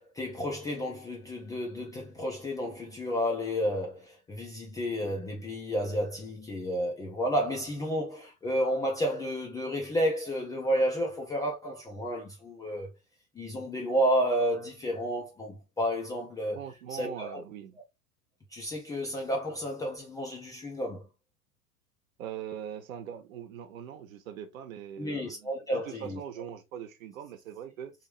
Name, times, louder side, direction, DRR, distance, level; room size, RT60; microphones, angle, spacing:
voice 1, 0.1-12.9 13.4-16.6 16.9-17.4 18.5-21.0 25.0-26.2, equal, 10° left, 0.4 m, -31 dB
voice 2, 16.5-17.8 22.2-25.5 25.8-27.9, right 9 dB, 60° right, 1.0 m, -41 dB
3.5 x 2.7 x 3.2 m
figure-of-eight pair, 90°, 45 cm